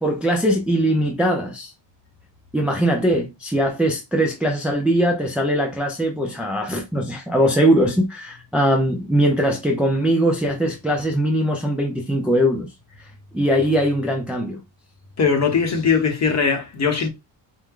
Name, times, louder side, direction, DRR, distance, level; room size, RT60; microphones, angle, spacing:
voice 1, 0.0-1.7 2.5-12.7 13.3-14.6, equal, 5° right, 0.4 m, -21 dB
voice 2, 15.2-17.1, left 5 dB, 40° left, 0.9 m, -20 dB
4.7 x 2.1 x 3.6 m
wide cardioid pair, 170°, 44 cm